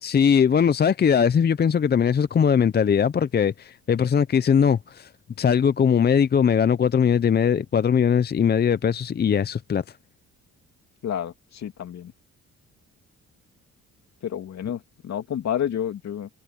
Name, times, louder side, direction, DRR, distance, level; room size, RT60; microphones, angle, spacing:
voice 1, 0.0-5.1 5.4-9.8, left 7 dB, 35° left, 0.6 m, -20 dB
voice 2, 11.0-12.1 14.2-16.3, left 9 dB, 60° left, 2.8 m, -30 dB
cardioid pair, 90°, 30 cm